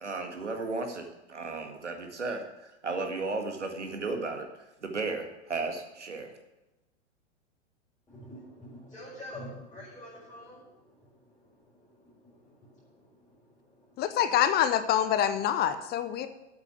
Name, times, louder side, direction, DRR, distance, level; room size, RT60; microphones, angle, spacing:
voice 1, 0.0-4.5 4.8-6.3, right 3 dB, 85° right, 4 dB, 1.9 m, -34 dB
voice 2, 8.1-14.2 16.2-16.3, equal, 10° left, -8 dB, 4.9 m, -48 dB
voice 3, 14.0-16.3, left 10 dB, 30° left, 10 dB, 0.8 m, -26 dB
8.4 x 8.3 x 8.4 m, 0.99 s
figure-of-eight pair, 100°, 34 cm